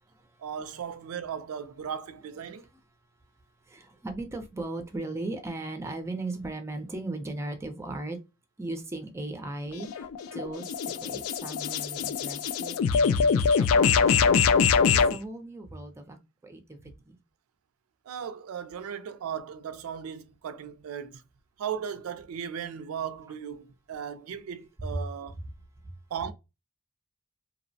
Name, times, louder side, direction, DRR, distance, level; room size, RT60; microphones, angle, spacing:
voice 1, 0.4-2.6 18.1-21.2 21.6-25.3 26.1-26.3, right 8 dB, 90° right, 0.4 m, -37 dB
voice 2, 3.7-8.2 8.6-10.1 10.3-14.4 14.9-16.2 16.4-16.8 17.1-17.2 24.8-25.0, right 2 dB, 15° right, 0.4 m, -37 dB
sound 1, 9.7-15.2, left 6 dB, 80° left, 0.3 m, -23 dB
2.8 x 2.0 x 2.6 m
head